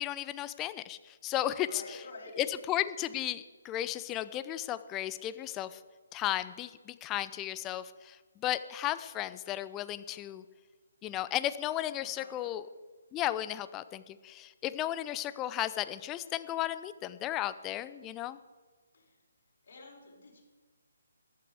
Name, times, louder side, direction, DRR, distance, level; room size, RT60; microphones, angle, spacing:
voice 1, 0.0-1.8 2.4-5.8 6.1-10.4 11.0-12.7 13.1-18.4, left 13 dB, 15° left, 14 dB, 0.5 m, -34 dB
voice 2, 1.6-2.5 11.9-12.5 18.9-19.1 19.6-20.4, left 2 dB, 45° left, -4 dB, 4.7 m, -49 dB
14.5 x 12.0 x 4.9 m, 1.4 s
figure-of-eight pair, 140°, 0 cm